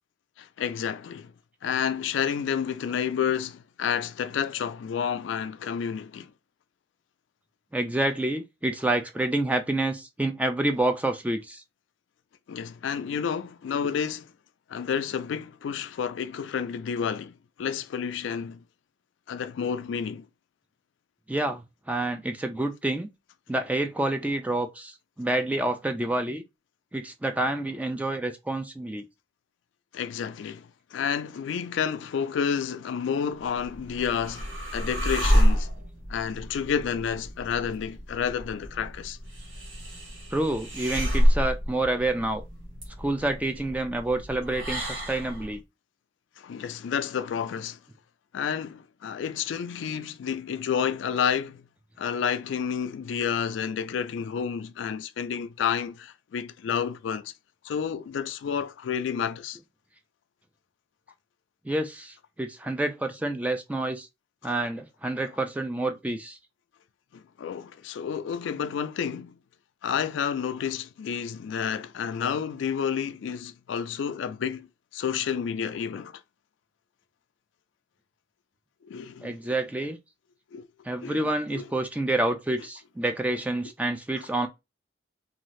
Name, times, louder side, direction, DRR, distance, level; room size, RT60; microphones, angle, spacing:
voice 1, 0.4-1.3 1.6-6.3 12.5-14.3 14.7-18.6 19.3-20.3 29.9-35.7 36.1-39.2 46.4-47.8 48.3-51.6 52.0-57.3 57.6-59.6 64.4-64.5 67.1-69.4 69.8-74.7 74.9-76.2 78.8-79.4 80.5-80.6 81.0-81.7, left 7 dB, 80° left, 0.3 m, -30 dB
voice 2, 7.7-11.6 21.3-23.1 23.5-26.4 26.9-29.0 40.3-42.4 43.0-45.6 61.6-64.1 64.4-66.4 79.2-80.0 80.9-84.5, right 2 dB, 10° right, 0.3 m, -28 dB
sound 1, 33.5-45.5, equal, 80° right, 1.1 m, -28 dB
2.6 x 2.4 x 3.1 m
head